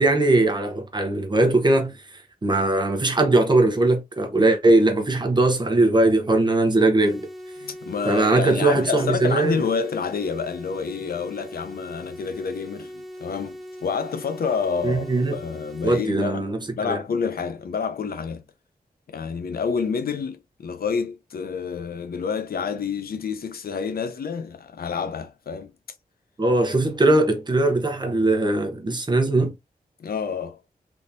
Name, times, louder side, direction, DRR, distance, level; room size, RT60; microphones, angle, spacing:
voice 1, 0.0-1.9 2.4-7.3 8.0-9.6 14.8-15.3 15.8-16.6 16.9-17.0 26.4-29.5, right 2 dB, 30° right, 0.9 m, -20 dB
sound 1, 7.0-16.0, equal, ahead, 1.4 m, -40 dB
voice 2, 7.6-18.4 19.1-25.7 30.0-30.6, left 6 dB, 75° left, 0.5 m, -28 dB
3.5 x 2.9 x 2.6 m
wide cardioid pair, 120°, 16 cm